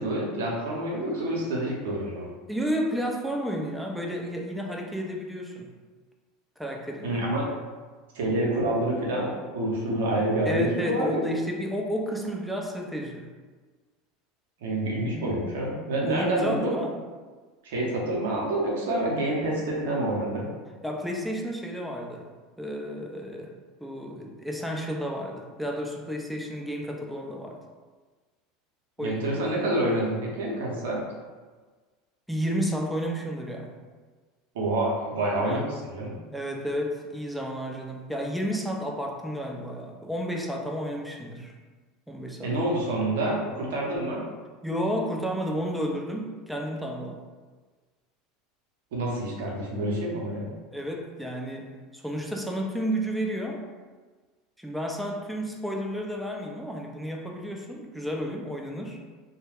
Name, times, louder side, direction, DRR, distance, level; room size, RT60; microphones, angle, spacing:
voice 1, 0.0-2.3 7.0-7.5 8.1-11.2 14.6-16.8 17.6-20.5 29.0-31.0 34.5-36.1 42.4-44.2 48.9-50.5, right 1 dB, 75° right, -3 dB, 0.7 m, -27 dB
voice 2, 2.5-5.7 6.6-7.3 10.5-13.3 16.1-17.0 20.8-22.3 22.6-23.5 23.8-27.6 29.0-29.2 32.3-33.8 35.4-35.7 36.3-41.5 42.1-42.6 44.6-47.2 50.7-53.7 54.6-59.0, equal, ahead, 0 dB, 0.4 m, -31 dB
2.2 x 2.1 x 3.3 m, 1.4 s
hypercardioid pair, 85°, 0 cm